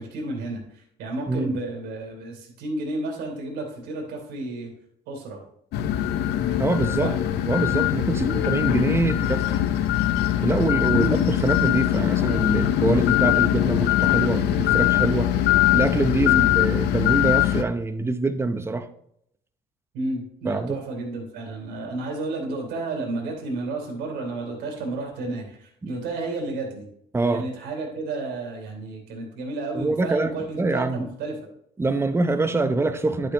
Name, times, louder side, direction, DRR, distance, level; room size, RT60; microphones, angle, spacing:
voice 1, 0.0-4.7 5.1-5.4 7.0-7.2 8.2-8.4 10.9-11.4 16.2-16.5 19.9-26.9 27.3-31.3, right 2 dB, 85° right, 3.2 m, -31 dB
voice 2, 1.3-1.6 6.6-7.1 7.5-9.4 10.4-15.3 15.7-18.9 20.5-20.8 25.8-25.9 27.1-27.4 29.7-31.0 31.8-33.3, right 3 dB, 15° right, 0.7 m, -25 dB
sound 1, 5.7-17.6, left 12 dB, 75° left, 0.7 m, -22 dB
11.5 x 6.8 x 3.0 m
cardioid pair, 110°, 17 cm